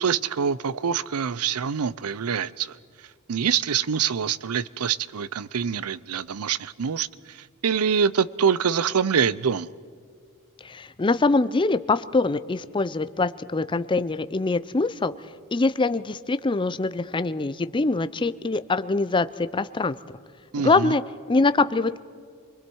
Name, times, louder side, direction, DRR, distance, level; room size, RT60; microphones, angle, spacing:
voice 1, 0.0-2.8 3.3-9.7 20.5-21.0, right 7 dB, 80° right, 18 dB, 0.6 m, -25 dB
voice 2, 10.6-15.1 15.5-19.9 20.6-21.0 21.3-22.0, left 3 dB, 20° left, 13 dB, 0.5 m, -23 dB
29.0 x 22.0 x 4.6 m, 2.1 s
head